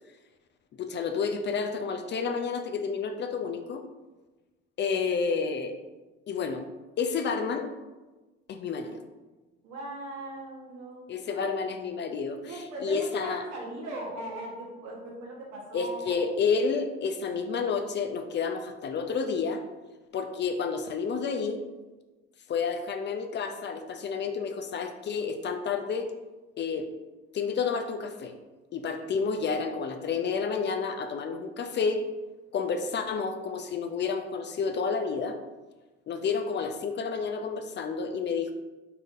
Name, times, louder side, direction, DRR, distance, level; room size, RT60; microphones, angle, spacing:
voice 1, 0.8-3.8 4.8-5.7 6.3-6.7 7.0-7.7 8.5-9.0 11.1-13.4 15.7-19.6 20.1-21.6 22.5-26.1 26.6-26.9 27.3-28.3 28.7-32.0 32.5-35.4 36.1-38.5, left 5 dB, 40° left, 6 dB, 0.4 m, -30 dB
voice 2, 9.6-11.5 12.5-16.2, right 1 dB, 70° right, -2 dB, 1.3 m, -39 dB
4.0 x 3.8 x 2.5 m, 1.2 s
hypercardioid pair, 70°, 29 cm